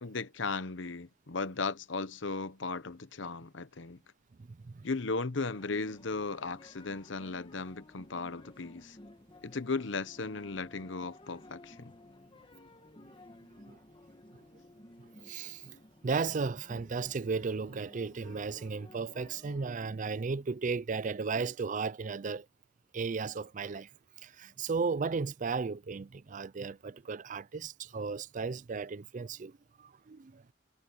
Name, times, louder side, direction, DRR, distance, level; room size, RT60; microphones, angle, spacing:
voice 1, 0.0-4.0 4.8-9.0 9.4-11.9, left 4 dB, 60° left, 0.9 m, -36 dB
voice 2, 4.4-4.9 13.7-13.8 14.3-14.4 15.0-15.8 16.0-22.5 22.9-23.9 24.2-30.5, right 4 dB, 40° right, 0.4 m, -35 dB
sound 1, 5.5-19.7, left 1 dB, 25° left, 1.4 m, -55 dB
head